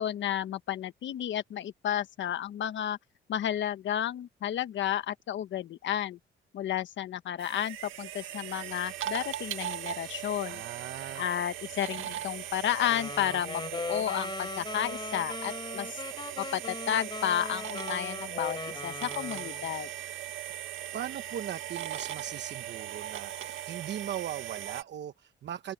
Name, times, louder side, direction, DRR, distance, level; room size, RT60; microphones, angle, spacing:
voice 1, 0.0-3.0 3.3-6.2 6.5-10.6 11.2-16.0 16.4-19.9, left 10 dB, 70° left, 1.3 m, -32 dB
sound 1, 7.4-24.8, right 12 dB, 85° right, 1.8 m, -39 dB
voice 2, 10.4-11.3 20.9-25.7, right 10 dB, 65° right, 1.0 m, -39 dB
sound 2, 12.9-19.7, left 3 dB, 25° left, 3.6 m, -39 dB
open air
cardioid pair, 90°, 20 cm